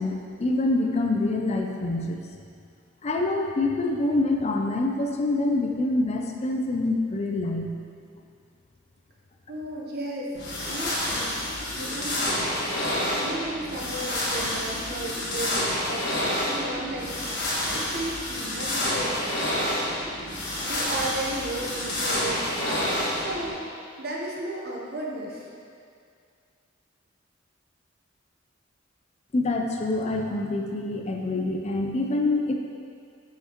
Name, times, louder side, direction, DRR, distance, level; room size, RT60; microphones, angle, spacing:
voice 1, 0.0-2.2 3.0-7.8 29.3-32.5, left 2 dB, 35° left, 2 dB, 0.5 m, -26 dB
voice 2, 9.5-10.3 10.6-11.3 11.7-12.5 12.9-19.9 20.6-22.9 23.1-23.7 24.0-25.5, right 1 dB, 55° right, -3 dB, 1.0 m, -35 dB
sound 1, 10.3-23.5, left 1 dB, 60° left, 1.5 m, -28 dB
7.5 x 5.7 x 3.0 m, 2.3 s
head